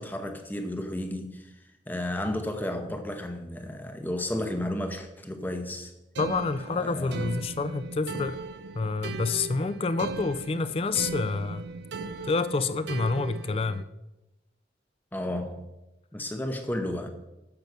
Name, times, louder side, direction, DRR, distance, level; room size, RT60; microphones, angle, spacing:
voice 1, 0.0-1.5 1.9-5.9 6.7-7.2 15.1-15.7 16.1-17.1, left 1 dB, 10° left, 0.7 m, -32 dB
voice 2, 6.2-8.4 8.7-11.7 12.2-13.8, left 4 dB, 30° left, 0.3 m, -28 dB
sound 1, 6.2-13.8, right 4 dB, 70° right, 0.4 m, -38 dB
6.9 x 5.2 x 6.0 m
head